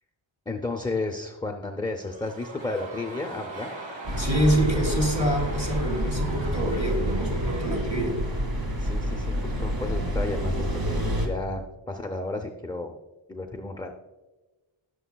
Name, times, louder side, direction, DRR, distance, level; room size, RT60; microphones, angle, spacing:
voice 1, 0.5-3.7 8.8-12.9 13.3-13.9, left 2 dB, 10° left, 3 dB, 0.5 m, -33 dB
sound 1, 2.0-10.1 10.4-10.5, right 2 dB, 70° right, 2.2 m, -42 dB
sound 2, 4.1-11.3, equal, 45° right, 2.1 m, -28 dB
voice 2, 4.2-8.2, equal, 15° right, 0 dB, 2.4 m, -26 dB
18.0 x 6.9 x 2.3 m, 1.1 s
wide cardioid pair, 155°, 47 cm